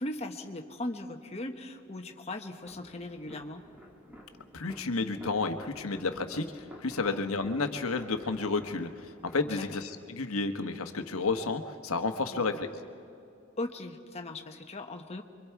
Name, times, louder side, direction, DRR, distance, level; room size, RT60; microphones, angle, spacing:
voice 1, 0.0-3.6 7.0-7.3 9.5-9.8 12.3-12.6 13.6-15.2, left 1 dB, 30° left, 4 dB, 1.2 m, -39 dB
sound 1, 2.6-9.7, equal, 10° right, 2.0 m, -51 dB
voice 2, 4.5-12.7, left 3 dB, 85° left, 7 dB, 1.2 m, -31 dB
28.0 x 24.0 x 4.7 m, 2.6 s
head